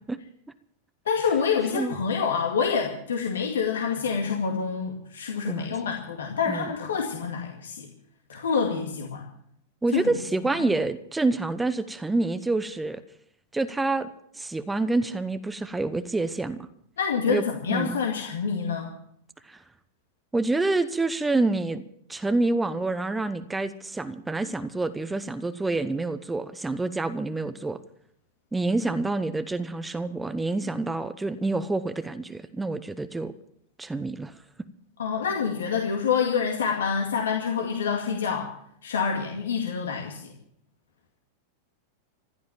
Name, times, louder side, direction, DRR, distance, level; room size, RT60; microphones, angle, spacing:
voice 1, 1.1-7.9 8.3-9.2 9.9-10.0 10.6-10.7 17.0-18.9 35.0-38.5 38.8-40.3, left 6 dB, 65° left, 2 dB, 2.1 m, -27 dB
voice 2, 9.8-13.0 13.5-14.1 14.3-16.6 17.3-18.0 19.4-19.6 20.3-21.8 22.1-27.8 28.5-33.3 33.8-34.3, right 2 dB, 10° right, 12 dB, 0.9 m, -27 dB
15.5 x 12.0 x 7.3 m, 0.69 s
figure-of-eight pair, 90°, 0 cm